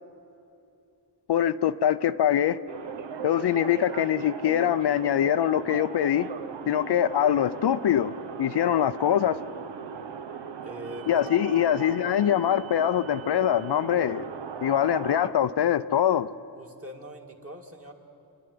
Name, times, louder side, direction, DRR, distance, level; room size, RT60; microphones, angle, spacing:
voice 1, 1.3-2.6 3.2-6.3 6.7-8.1 8.4-9.4 11.1-14.3 14.6-16.3, left 10 dB, 65° left, 0.6 m, -23 dB
sound 1, 2.7-15.3, right 7 dB, 75° right, 1.0 m, -38 dB
voice 2, 10.6-11.2 11.4-11.7 16.5-17.9, right 1 dB, 30° right, 2.2 m, -42 dB
27.5 x 11.0 x 9.5 m
wide cardioid pair, 95°, 43 cm